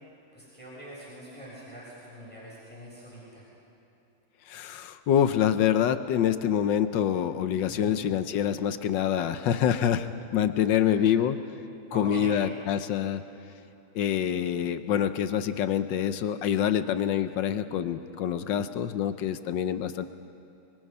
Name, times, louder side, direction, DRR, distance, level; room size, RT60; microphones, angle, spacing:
voice 1, 0.3-3.4 7.7-7.9 10.8-11.0 11.9-12.3, equal, 5° left, -7 dB, 7.1 m, -43 dB
voice 2, 4.5-11.4 11.9-13.2 13.9-20.1, left 9 dB, 75° left, 11 dB, 1.4 m, -26 dB
26.0 x 22.5 x 5.6 m, 3.0 s
omnidirectional pair, 2.0 m